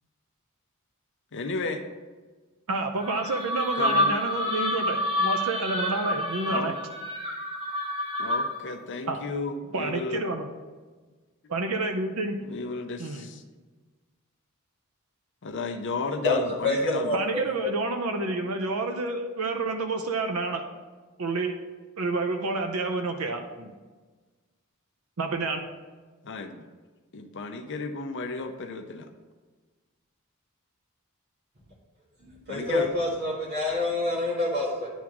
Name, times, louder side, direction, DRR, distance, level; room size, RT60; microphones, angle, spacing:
voice 1, 1.3-1.8 3.8-4.1 6.5-6.7 8.2-10.2 12.4-13.4 15.4-17.2 26.2-26.6 27.1-29.1 32.5-32.9, left 3 dB, 55° left, 6 dB, 0.7 m, -33 dB
voice 2, 2.7-6.8 9.1-9.2 9.7-10.5 11.5-12.4 13.0-13.3 17.1-20.6 21.2-21.6 22.0-23.7 25.2-25.6, right 3 dB, 75° right, 4 dB, 0.7 m, -29 dB
sound 1, 3.0-8.7, left 1 dB, 25° right, 1.4 m, -28 dB
voice 3, 16.2-17.7 32.2-34.9, left 2 dB, 50° right, -4 dB, 1.6 m, -27 dB
10.0 x 3.6 x 6.0 m, 1.3 s
head